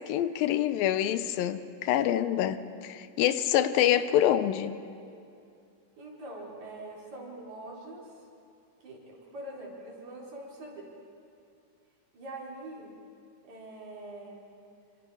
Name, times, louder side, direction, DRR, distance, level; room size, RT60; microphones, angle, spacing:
voice 1, 0.1-4.7, left 11 dB, 85° left, 12 dB, 2.6 m, -26 dB
voice 2, 6.0-8.2 8.8-10.9 12.1-12.9 13.4-14.4, right 2 dB, 55° right, -4 dB, 5.1 m, -43 dB
26.5 x 25.5 x 4.8 m, 2.5 s
omnidirectional pair, 4.0 m